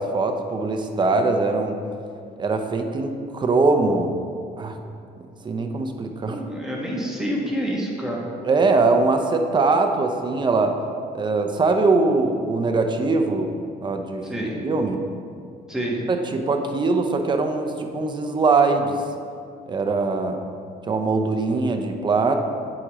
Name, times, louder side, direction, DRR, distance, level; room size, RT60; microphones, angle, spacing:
voice 1, 0.0-1.8 2.4-4.1 4.6-4.8 5.4-6.4 8.4-10.8 11.1-13.5 13.8-14.3 14.6-15.0 16.1-19.0 19.7-20.4 20.9-22.3, right 3 dB, 25° right, 5 dB, 0.5 m, -22 dB
voice 2, 6.2-8.2 14.2-14.6 15.7-16.0, equal, 5° right, -4 dB, 1.2 m, -27 dB
7.7 x 4.8 x 3.0 m, 2.3 s
cardioid pair, 110°, 17 cm